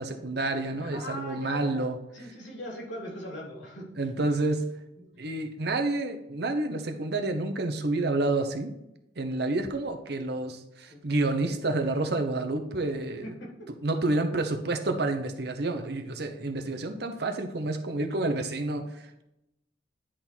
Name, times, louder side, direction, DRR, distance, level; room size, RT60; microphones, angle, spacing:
voice 1, 0.0-2.0 4.0-4.8 5.2-8.7 9.2-13.4 13.8-19.2, right 2 dB, 60° right, 6 dB, 0.9 m, -29 dB
voice 2, 0.8-1.7 2.1-3.8 10.9-11.0 13.2-13.5 17.0-17.1, equal, 85° left, -3 dB, 3.0 m, -39 dB
10.0 x 3.7 x 4.5 m, 0.87 s
head